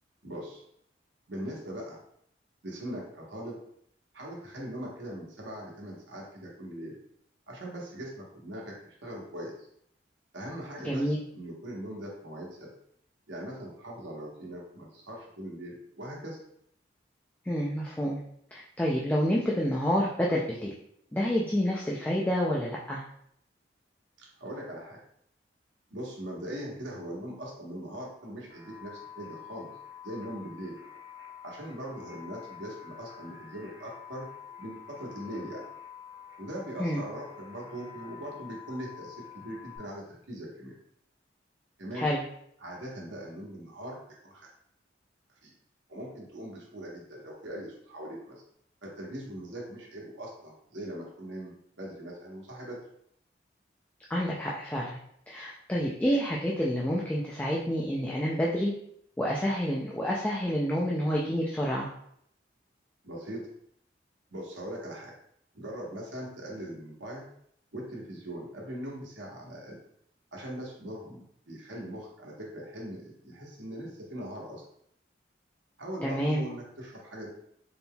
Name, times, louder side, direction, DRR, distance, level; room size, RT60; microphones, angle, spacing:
voice 1, 0.2-0.6 1.3-2.0 2.6-3.6 4.1-7.0 7.5-9.5 10.3-12.7 13.3-16.4 24.2-25.0 25.9-29.7 30.0-30.8 31.4-34.3 34.6-35.6 36.4-40.7 41.8-42.1 42.6-44.0 44.2-44.5 45.4-45.5 45.9-48.4 48.8-52.8 63.0-63.5 64.3-65.1 65.5-67.3 67.7-69.8 70.3-74.6 75.8-77.3, equal, 80° right, -2 dB, 1.2 m, -40 dB
voice 2, 10.8-11.2 17.4-18.2 18.5-20.7 21.1-23.0 36.8-37.0 41.9-42.2 54.1-55.0 55.3-58.7 59.2-61.9 76.0-76.4, equal, 10° left, -4 dB, 0.3 m, -28 dB
sound 1, 28.5-39.8, left 8 dB, 60° right, 1.2 m, -48 dB
4.1 x 3.6 x 2.3 m, 0.70 s
head